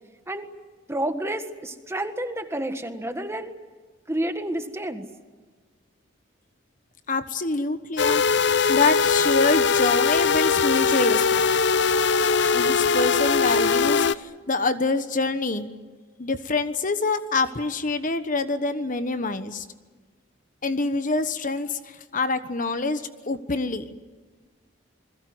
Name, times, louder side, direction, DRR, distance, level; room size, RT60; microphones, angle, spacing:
voice 1, 0.9-3.5 4.1-5.1, right 1 dB, 15° right, 7 dB, 1.7 m, -29 dB
voice 2, 7.1-11.5 12.5-15.7 16.2-19.7 20.6-24.0, left 3 dB, 45° left, 10 dB, 1.2 m, -26 dB
sound 1, 8.0-14.2, left 5 dB, 60° left, 0.7 m, -21 dB
29.0 x 21.5 x 7.9 m, 1.4 s
head